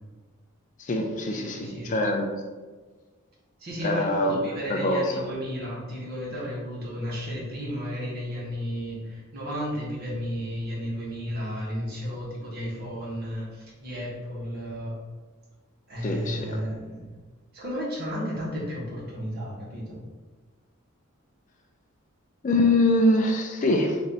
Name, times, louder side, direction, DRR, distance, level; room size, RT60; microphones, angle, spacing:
voice 1, 0.8-2.3 3.8-5.2 16.0-16.6 22.4-24.0, left 1 dB, 35° left, 3 dB, 0.4 m, -24 dB
voice 2, 1.3-1.9 3.6-14.9 15.9-17.1 17.5-20.0, equal, 45° right, -5 dB, 1.4 m, -33 dB
4.2 x 2.6 x 4.0 m, 1.3 s
head